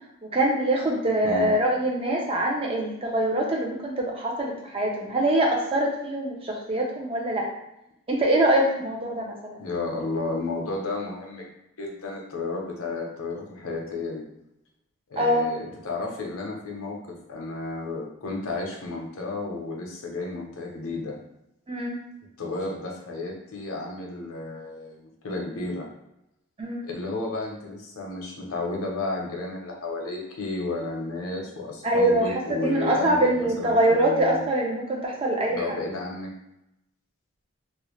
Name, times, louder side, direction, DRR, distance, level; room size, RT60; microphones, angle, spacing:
voice 1, 0.3-7.5 8.1-9.6 15.2-15.5 21.7-22.0 26.6-26.8 31.8-35.7, right 1 dB, 25° right, -1 dB, 0.4 m, -24 dB
voice 2, 9.6-11.5 11.8-14.2 15.1-17.0 17.3-21.1 22.4-25.9 26.8-34.4 35.5-36.3, left 2 dB, 80° left, -1 dB, 0.6 m, -32 dB
2.4 x 2.0 x 3.0 m, 0.85 s
head